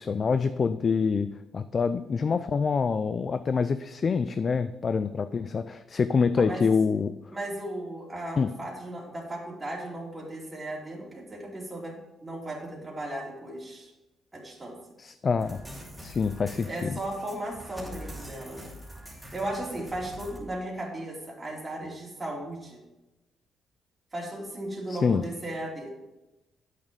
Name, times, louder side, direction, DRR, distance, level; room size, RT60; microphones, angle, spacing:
voice 1, 0.0-7.1 8.4-8.5 15.0-15.6 16.0-16.9 24.9-25.3, left 5 dB, 40° left, 11 dB, 0.4 m, -26 dB
voice 2, 7.3-13.9 14.3-14.7 16.7-18.7 19.3-22.8 24.1-25.9, right 1 dB, 20° right, -4 dB, 2.9 m, -36 dB
sound 1, 15.4-20.4, equal, ahead, 2.8 m, -44 dB
8.8 x 6.5 x 5.3 m, 1.0 s
cardioid pair, 90°, 0 cm